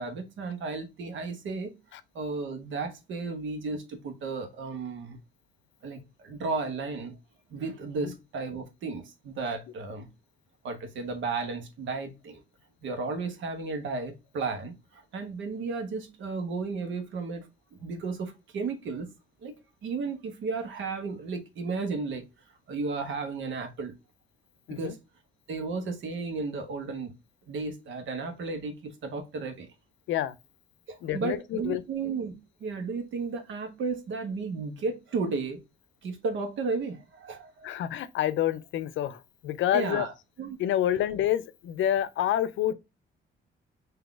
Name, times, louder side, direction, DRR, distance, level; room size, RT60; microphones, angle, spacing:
voice 1, 0.0-1.7 2.1-5.2 5.8-7.2 7.5-10.1 10.6-12.4 12.8-19.1 19.4-22.2 22.7-23.9 24.7-25.0 25.5-27.1 27.5-29.7 30.9-32.3 32.6-35.6 36.0-37.7 39.7-40.1 40.4-40.6, right 4 dB, 75° right, 1.2 m, -34 dB
voice 2, 31.0-31.8 37.6-40.1 40.6-42.7, left 11 dB, 75° left, 0.5 m, -28 dB
3.8 x 2.8 x 3.6 m
cardioid pair, 90°, 20 cm